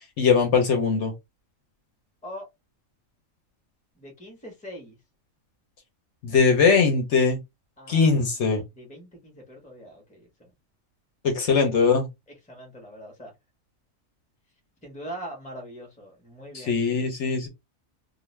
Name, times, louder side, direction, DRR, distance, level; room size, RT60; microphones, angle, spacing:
voice 1, 0.2-1.1 6.2-7.4 7.9-8.6 11.2-12.1 16.5-17.5, left 5 dB, 65° left, 1.0 m, -21 dB
voice 2, 3.9-5.0 7.8-8.1 8.7-10.5 12.5-13.3 14.8-16.8, equal, 5° left, 0.8 m, -42 dB
2.4 x 2.3 x 3.1 m
omnidirectional pair, 1.4 m